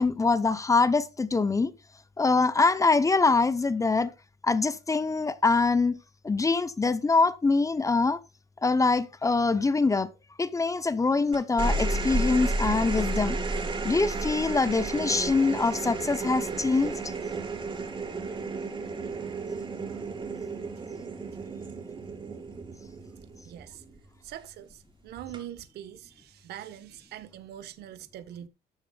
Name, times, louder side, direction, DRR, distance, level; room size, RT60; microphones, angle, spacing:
voice 1, 0.0-1.7 2.2-4.1 4.4-6.0 6.2-8.2 8.6-10.1 10.4-13.4 13.8-17.0, left 3 dB, 20° left, 0.9 m, -24 dB
sound 1, 11.3-23.9 25.2-25.6, right 3 dB, 30° right, 3.9 m, -32 dB
voice 2, 23.4-23.8 24.2-28.5, right 11 dB, 75° right, 1.4 m, -43 dB
14.0 x 10.0 x 2.4 m
cardioid pair, 110°, 17 cm